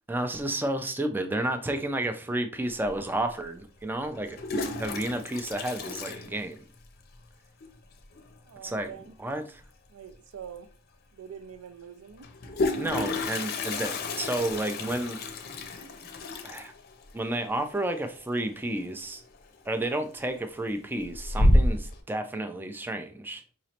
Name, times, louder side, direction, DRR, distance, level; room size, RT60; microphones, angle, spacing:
voice 1, 0.1-4.4 4.8-6.6 8.6-8.9 9.2-9.6 12.8-15.2 16.4-16.7 17.1-19.2 19.7-23.4, right 1 dB, 10° right, 0.3 m, -31 dB
Toilet flush, 2.8-2.9 4.1-7.0 7.2-7.3 7.6-7.7 8.0-8.4 10.1-10.2 10.5-10.6 12.2-18.9 19.2-19.6 20.0-20.6 21.0-22.0, left 1 dB, 45° left, 0.6 m, -29 dB
voice 2, 8.4-9.1 9.9-10.7 11.1-12.3 12.6-13.1, right 8 dB, 80° right, 0.5 m, -45 dB
4.8 x 3.0 x 2.8 m
head